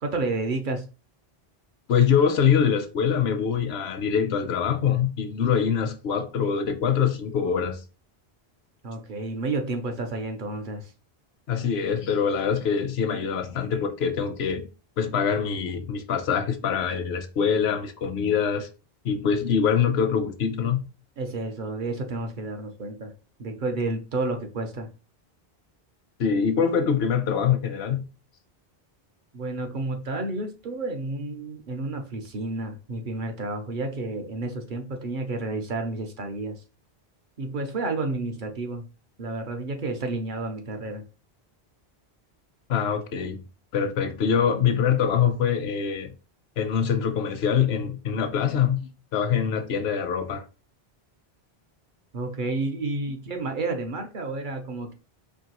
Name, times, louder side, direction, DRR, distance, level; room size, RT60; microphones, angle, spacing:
voice 1, 0.0-0.9 8.8-10.9 21.2-23.1 23.4-24.9 29.3-36.6 37.4-38.9 39.2-41.0 52.1-54.9, right 2 dB, 55° right, 0.8 m, -30 dB
voice 2, 1.9-7.8 11.5-14.7 15.0-18.7 19.0-20.8 26.2-28.0 42.7-43.4 43.7-46.1 46.6-50.4, left 7 dB, 80° left, 0.9 m, -24 dB
4.6 x 2.7 x 2.9 m
omnidirectional pair, 1.1 m